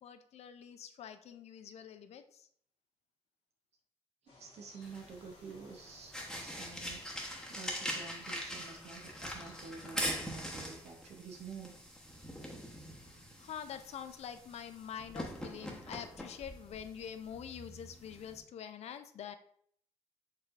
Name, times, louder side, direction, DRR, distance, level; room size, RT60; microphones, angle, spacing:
voice 1, 0.0-2.5 13.0-19.4, left 8 dB, 70° left, 9 dB, 0.4 m, -46 dB
voice 2, 4.2-7.0 7.5-11.7, right 5 dB, 70° right, 1 dB, 0.6 m, -49 dB
sound 1, 4.3-10.0, left 3 dB, 55° left, 1.3 m, -61 dB
sound 2, 4.8-18.4, equal, 5° left, 0.9 m, -43 dB
4.5 x 3.0 x 2.4 m, 0.63 s
cardioid pair, 80°, 11 cm